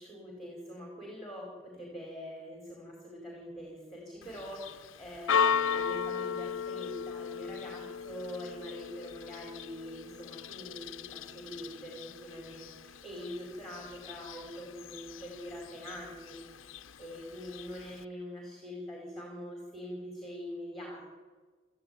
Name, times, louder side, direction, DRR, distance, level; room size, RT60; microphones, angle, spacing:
voice 1, 0.0-21.0, equal, ahead, -1 dB, 4.7 m, -44 dB
Church bell, 4.2-18.0, left 6 dB, 80° left, 0.8 m, -37 dB
26.0 x 15.0 x 9.5 m, 1.4 s
head